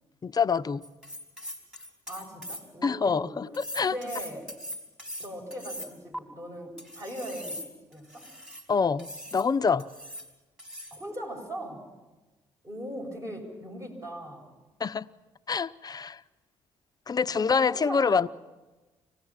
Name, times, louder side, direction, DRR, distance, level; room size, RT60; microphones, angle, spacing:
voice 1, 0.2-0.8 2.8-3.9 8.7-9.9 14.8-15.1 15.5-16.2 17.1-18.3, left 5 dB, 35° left, 13 dB, 0.7 m, -26 dB
sound 1, 0.8-2.9 3.5-6.2 6.8-8.7 9.0-9.5 9.8-10.3 10.6-11.0, equal, 10° right, 4.1 m, -40 dB
voice 2, 2.1-3.4 3.8-4.5 5.2-7.6 7.9-8.3 10.9-11.9 12.6-14.5 17.3-18.3, equal, 30° right, 2 dB, 7.0 m, -39 dB
25.0 x 18.0 x 7.4 m, 1.2 s
supercardioid pair, 60°, 11 cm